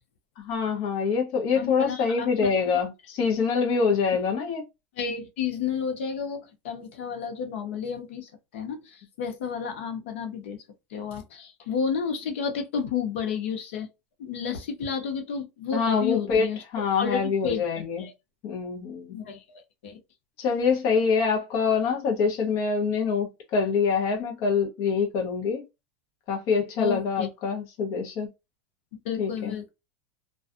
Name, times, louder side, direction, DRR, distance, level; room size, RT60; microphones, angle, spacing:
voice 1, 0.4-4.6 15.7-16.5 16.7-18.0 18.4-19.2 20.4-25.6 26.3-28.3 29.2-29.5, left 5 dB, 40° left, 0.7 m, -25 dB
voice 2, 1.5-2.5 5.0-10.6 10.9-13.9 14.2-16.6 17.0-18.1 19.1-20.0 26.8-27.3 29.0-29.7, left 6 dB, 75° left, 0.8 m, -31 dB
2.6 x 2.3 x 2.4 m
supercardioid pair, 170°, 7 cm